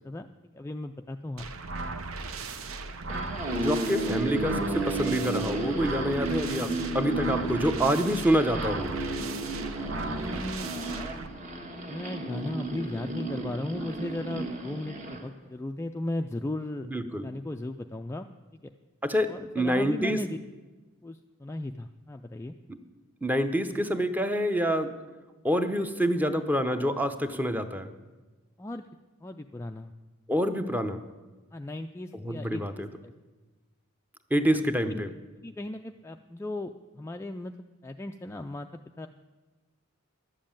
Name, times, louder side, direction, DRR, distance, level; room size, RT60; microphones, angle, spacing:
voice 1, 0.5-1.5 10.0-10.7 11.9-16.9 17.2-18.3 18.6-18.7 19.3-20.4 21.0-22.6 28.6-28.9 29.2-29.9 31.5-33.1 34.9-35.0 35.4-37.5 37.8-38.7 39.0-39.1, left 1 dB, 15° left, 5 dB, 0.3 m, -36 dB
sound 1, 1.4-11.3, right 3 dB, 75° right, 0.9 m, -37 dB
sound 2, 2.9-15.3, right 2 dB, 35° right, 1.5 m, -33 dB
voice 2, 3.6-8.9 16.9-17.3 19.0-19.3 19.5-20.2 22.7-22.8 23.2-24.9 25.4-27.9 30.3-31.0 32.2-32.9 34.3-35.1, equal, 10° right, 8 dB, 0.7 m, -27 dB
12.0 x 7.5 x 8.8 m, 1.2 s
head